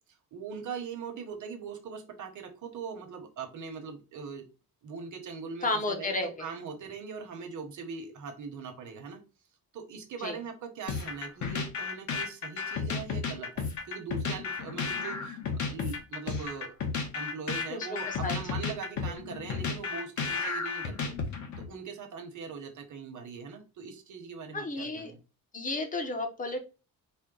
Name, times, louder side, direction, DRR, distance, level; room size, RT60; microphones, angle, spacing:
voice 1, 0.3-4.4 4.8-9.2 9.7-16.7 17.1-21.1 21.6-25.2, right 5 dB, 55° right, 5 dB, 1.0 m, -41 dB
voice 2, 5.6-6.4 10.2-10.4 17.7-18.3 19.0-19.1 24.5-25.1 25.5-26.6, left 2 dB, 25° left, 5 dB, 0.7 m, -32 dB
sound 1, 10.9-21.7, left 5 dB, 55° left, 0.9 m, -33 dB
4.3 x 2.1 x 3.7 m, 0.32 s
cardioid pair, 170°, 36 cm